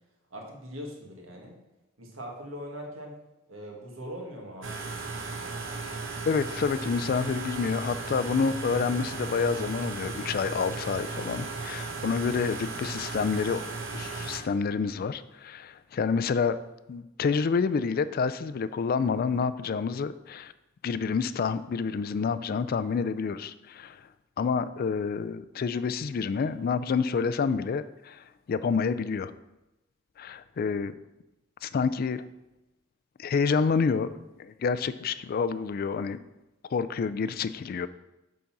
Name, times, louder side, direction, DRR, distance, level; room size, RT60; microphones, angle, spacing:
voice 1, 0.3-1.6 2.0-3.2 3.5-5.1, equal, 85° right, 0 dB, 1.8 m, -41 dB
sound 1, 4.6-14.4, right 3 dB, 65° right, 1.0 m, -36 dB
voice 2, 6.2-13.6 13.9-16.6 16.9-20.5 20.8-24.0 24.4-29.3 30.2-30.9 31.6-32.2 33.2-36.2 36.7-37.9, left 5 dB, 45° left, 14 dB, 0.3 m, -28 dB
8.5 x 4.0 x 5.9 m, 0.97 s
head